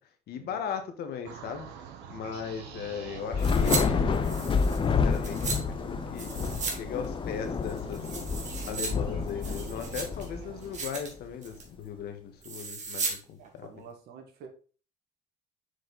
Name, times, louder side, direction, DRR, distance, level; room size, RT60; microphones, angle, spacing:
voice 1, 0.3-1.7 2.1-4.4 4.9-6.3 6.7-8.0 8.6-13.7, left 7 dB, 70° left, 1.5 m, -38 dB
sound 1, 1.2-10.8, right 8 dB, 90° right, 1.2 m, -46 dB
Thunder / Rain, 3.3-10.8, left 5 dB, 30° left, 0.7 m, -29 dB
sound 2, 3.4-3.8 4.1-5.6 6.2-6.8 7.0-7.1 7.6-8.9 9.3-10.3 10.6-11.1 11.4-11.7 12.4-13.2 13.5-13.6, right 4 dB, 45° right, 2.1 m, -35 dB
voice 2, 13.4-14.5, right 6 dB, 75° right, 1.7 m, -49 dB
6.6 x 4.8 x 4.0 m
cardioid pair, 110°, 17 cm